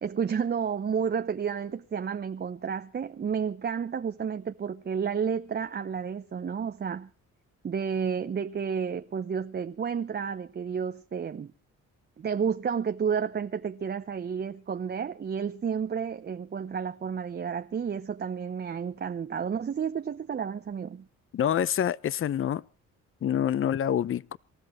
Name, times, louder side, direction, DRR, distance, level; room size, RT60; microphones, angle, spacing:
voice 1, 0.0-7.1 7.6-11.5 12.2-21.1, right 7 dB, 35° right, 0.8 m, -31 dB
voice 2, 21.3-22.6 23.2-24.4, left 9 dB, 45° left, 0.7 m, -26 dB
27.0 x 13.5 x 3.1 m
cardioid pair, 90°, 30 cm